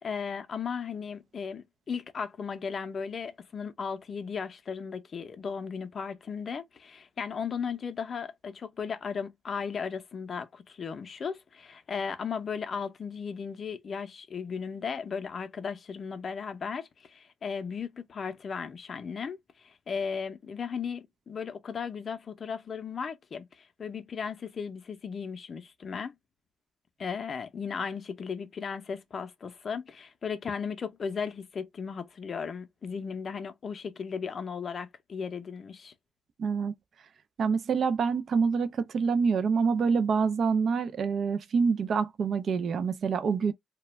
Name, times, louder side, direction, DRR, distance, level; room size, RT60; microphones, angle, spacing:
voice 1, 0.0-26.1 27.0-35.9, left 6 dB, 45° left, 0.5 m, -36 dB
voice 2, 36.4-36.7 37.4-43.5, right 5 dB, 55° right, 0.3 m, -26 dB
2.3 x 2.1 x 3.0 m
cardioid pair, 90°, 0 cm